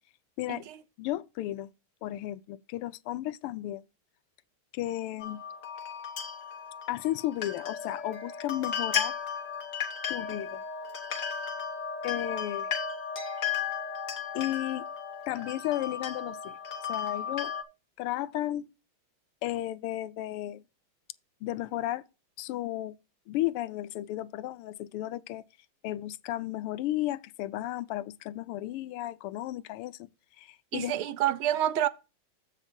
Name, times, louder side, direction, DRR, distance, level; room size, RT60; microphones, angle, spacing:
voice 1, 1.0-1.7 2.0-3.8 4.7-5.4 6.9-9.1 10.1-10.6 12.0-12.7 14.3-14.9 15.3-16.6 16.9-17.5 18.0-18.7 19.4-20.6 21.4-22.0 22.4-22.9 23.3-25.4 25.8-30.0 30.4-30.9, left 14 dB, 90° left, 1.5 m, -33 dB
sound 1, 5.2-17.6, left 7 dB, 40° left, 1.4 m, -35 dB
voice 2, 30.7-31.9, right 12 dB, 80° right, 1.4 m, -27 dB
15.0 x 5.8 x 2.7 m
omnidirectional pair, 2.4 m